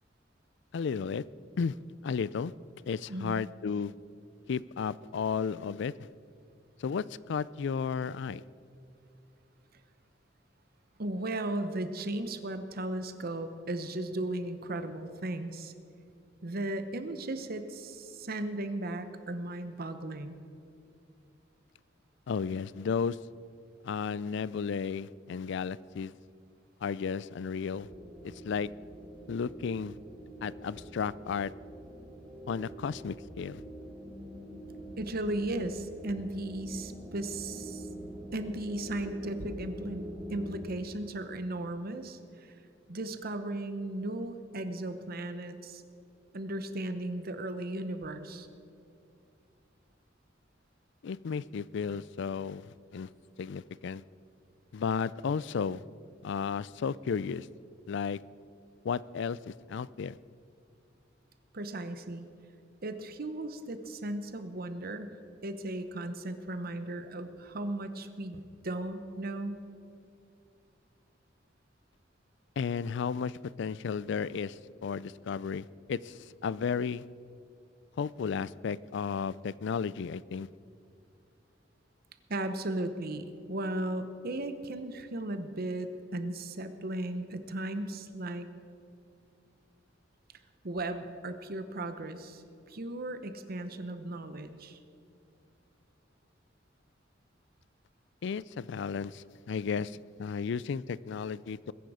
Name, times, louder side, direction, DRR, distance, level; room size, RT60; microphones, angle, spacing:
voice 1, 0.7-1.2 1.6-1.8 2.0-2.5 2.9-3.9 4.5-5.9 6.8-8.4 22.3-23.2 23.8-26.1 26.8-27.9 28.2-28.7 29.3-30.0 30.4-31.5 32.5-33.6 51.0-53.1 53.4-54.0 54.7-55.8 56.2-57.5 57.9-58.2 58.8-60.2 72.6-77.0 78.0-80.5 98.2-101.7, left 6 dB, 65° left, 20 dB, 0.4 m, -33 dB
voice 2, 11.0-15.7 16.4-20.4 35.0-37.9 38.3-42.6 42.9-45.8 46.3-48.5 61.5-62.3 62.8-65.1 65.4-69.6 82.3-88.5 90.6-92.4 92.7-94.8, right 1 dB, 55° right, 9 dB, 0.9 m, -36 dB
sound 1, 27.7-40.7, equal, 5° right, 2.0 m, -44 dB
21.0 x 10.5 x 4.9 m, 2.6 s
head